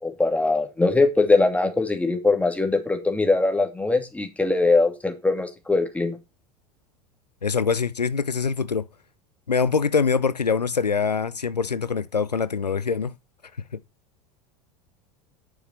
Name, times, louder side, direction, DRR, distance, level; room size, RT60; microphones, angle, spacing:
voice 1, 0.0-6.2, left 3 dB, 5° left, 2.6 m, -21 dB
voice 2, 7.4-8.9 9.5-13.1, left 5 dB, 90° left, 0.5 m, -24 dB
8.8 x 6.8 x 4.3 m
figure-of-eight pair, 80°, 20 cm